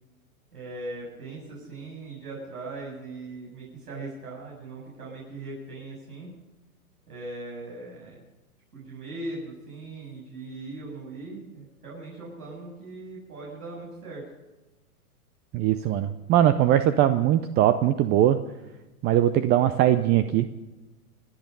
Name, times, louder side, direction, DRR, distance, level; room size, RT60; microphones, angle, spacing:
voice 1, 0.5-6.3 7.1-8.2 8.7-14.2, right 2 dB, 85° right, -5 dB, 7.5 m, -39 dB
voice 2, 15.5-18.4 19.0-20.5, right 12 dB, 25° right, 11 dB, 0.5 m, -21 dB
26.5 x 9.1 x 5.4 m, 1.1 s
hypercardioid pair, 120°, 45 cm